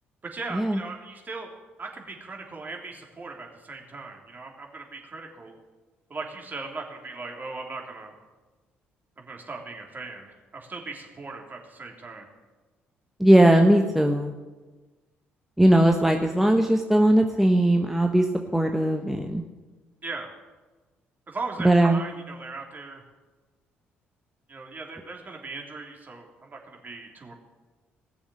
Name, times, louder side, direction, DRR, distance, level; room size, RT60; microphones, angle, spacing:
voice 1, 0.2-1.5 1.8-5.5 6.1-8.1 9.2-12.3 20.0-20.3 21.3-23.0 24.5-27.3, right 3 dB, 35° right, 0 dB, 3.3 m, -38 dB
voice 2, 13.2-14.3 15.6-19.4 21.6-22.0, right 1 dB, 5° right, 3 dB, 1.3 m, -19 dB
19.0 x 7.0 x 7.8 m, 1.2 s
figure-of-eight pair, 45°, 6 cm